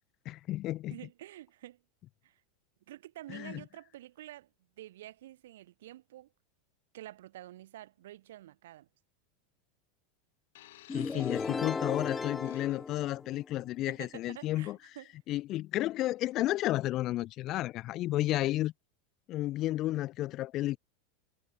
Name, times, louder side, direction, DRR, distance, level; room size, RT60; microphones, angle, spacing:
voice 1, 0.3-1.0 3.3-3.6 10.9-14.8 15.3-18.7 19.3-20.8, left 15 dB, 45° left, 0.6 m, -32 dB
voice 2, 0.9-1.8 2.2-2.4 2.9-4.5 4.8-6.3 6.9-8.9 10.9-11.3 13.6-15.1, right 14 dB, 80° right, 3.2 m, -49 dB
sound 1, 10.5-13.1 14.0-14.2, left 16 dB, 75° left, 3.4 m, -56 dB
sound 2, 10.9-13.7, left 4 dB, 15° left, 0.9 m, -36 dB
hypercardioid pair, 110°, 0 cm